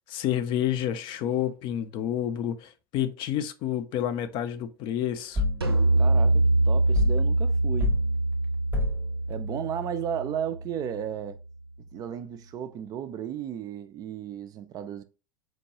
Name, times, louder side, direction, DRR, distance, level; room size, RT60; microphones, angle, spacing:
voice 1, 0.1-5.4, left 10 dB, 40° left, 0.4 m, -29 dB
sound 1, 5.4-5.7 6.9-7.3 7.8-8.1 8.7-9.1, left 3 dB, 15° right, 0.9 m, -27 dB
sound 2, 5.6-11.0, right 2 dB, 85° right, 0.6 m, -24 dB
voice 2, 6.0-8.0 9.3-11.4 11.9-15.0, right 9 dB, 30° right, 0.3 m, -34 dB
4.6 x 2.2 x 2.8 m
figure-of-eight pair, 85°, 13 cm